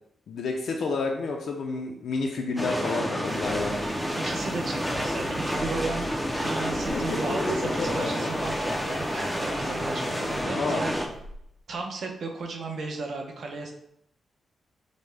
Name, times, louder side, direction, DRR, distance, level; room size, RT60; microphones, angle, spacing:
voice 1, 0.3-3.9 10.5-10.8, left 3 dB, 60° left, 1 dB, 0.4 m, -29 dB
sound 1, 2.6-11.1, equal, ahead, 0.4 m, -29 dB
sound 2, 3.2-10.4, right 1 dB, 85° right, 0.9 m, -44 dB
voice 2, 4.2-11.0 11.7-13.7, right 3 dB, 50° right, 2 dB, 0.6 m, -35 dB
Laughter, 6.7-11.3, left 1 dB, 80° left, 0.9 m, -35 dB
5.1 x 2.1 x 3.2 m, 0.75 s
wide cardioid pair, 170°, 0 cm